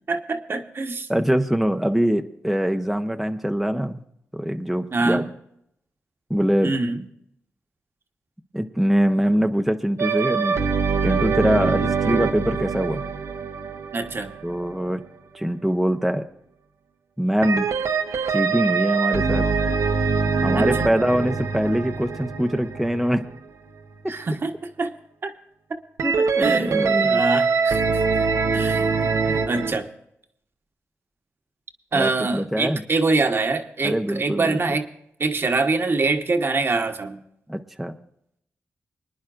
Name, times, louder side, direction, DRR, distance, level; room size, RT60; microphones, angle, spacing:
voice 1, 0.1-1.1 4.9-5.3 6.6-7.0 13.9-14.3 20.5-21.0 24.1-24.5 24.8-24.9 25.2-25.3 26.2-28.0 28.5-28.9 29.2-29.9 31.9-34.9 35.2-37.2, right 3 dB, 50° right, 6 dB, 1.1 m, -24 dB
voice 2, 1.1-4.0 4.3-5.2 6.3-6.7 8.5-10.6 11.0-13.0 14.4-15.0 15.3-16.2 17.2-17.7 18.3-19.5 20.4-23.2 26.0-27.2 31.9-32.8 33.8-34.6 37.5-37.9, equal, ahead, 5 dB, 0.7 m, -23 dB
sound 1, 10.0-14.9 17.4-23.5 26.0-29.7, right 5 dB, 75° right, 0.9 m, -23 dB
25.5 x 10.0 x 2.5 m, 0.74 s
cardioid pair, 70°, 5 cm